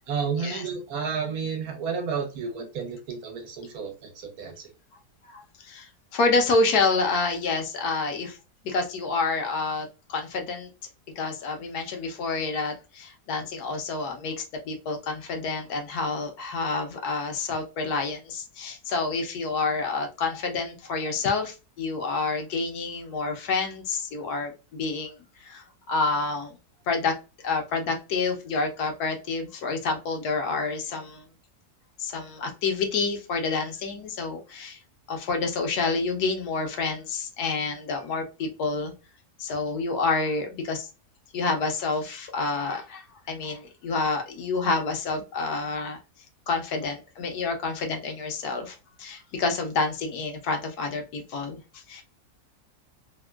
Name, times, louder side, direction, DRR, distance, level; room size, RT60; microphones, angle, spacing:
voice 1, 0.1-4.5, right 6 dB, 70° right, 3 dB, 1.3 m, -31 dB
voice 2, 5.2-8.4 8.6-10.7 11.2-26.6 26.9-27.1 27.4-31.2 32.0-34.8 35.1-38.9 39.4-40.9 41.3-46.0 46.5-52.0, left 4 dB, 75° left, 4 dB, 1.2 m, -28 dB
3.4 x 2.1 x 2.2 m, 0.30 s
omnidirectional pair, 1.6 m